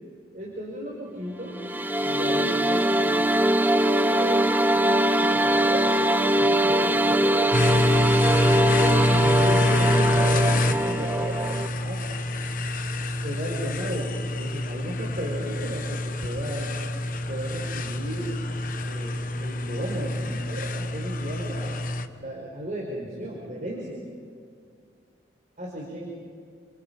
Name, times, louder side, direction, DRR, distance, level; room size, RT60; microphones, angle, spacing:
voice 1, 0.3-1.6 2.0-3.3 3.6-7.7 8.8-12.1 13.2-16.7 17.3-21.7 22.2-24.0 25.6-26.1, equal, 45° right, -2 dB, 4.5 m, -35 dB
sound 1, 1.5-11.7, right 1 dB, 10° right, 0.5 m, -22 dB
sound 2, 7.5-22.1, left 1 dB, 45° left, 1.1 m, -26 dB
30.0 x 26.0 x 5.2 m, 2.3 s
head